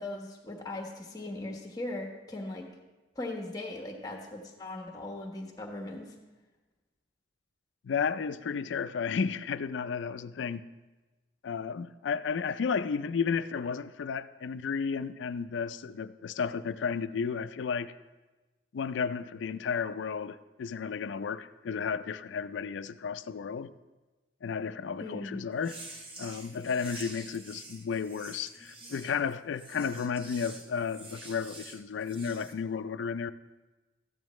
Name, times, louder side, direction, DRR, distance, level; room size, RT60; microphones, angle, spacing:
voice 1, 0.0-2.7 3.1-6.1 25.0-25.4, left 2 dB, 20° left, 1.3 m, -39 dB
voice 2, 7.8-10.6 11.4-17.9 18.7-23.7 24.4-25.8 26.2-33.3, left 6 dB, 85° left, 0.4 m, -33 dB
sound 1, 25.6-32.5, right 2 dB, 30° right, 0.9 m, -48 dB
14.0 x 9.0 x 3.1 m
head